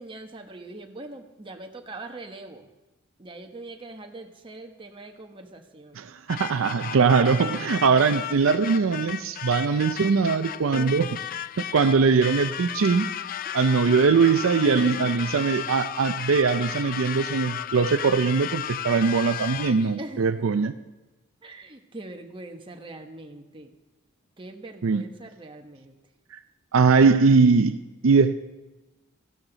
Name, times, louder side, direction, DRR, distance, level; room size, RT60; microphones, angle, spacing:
voice 1, 0.0-2.7 3.2-6.0 10.7-11.0 13.4-14.1 14.6-15.3 20.0-20.3 21.4-23.7 24.4-25.9, right 2 dB, 25° right, 3 dB, 1.1 m, -41 dB
voice 2, 6.0-11.1 11.7-13.1 13.5-20.7 24.8-25.0 26.7-27.8 28.0-28.3, right 5 dB, 75° right, 10 dB, 0.5 m, -21 dB
sound 1, 6.3-20.0, left 10 dB, 45° left, 0.4 m, -34 dB
14.5 x 12.0 x 3.9 m, 1.1 s
head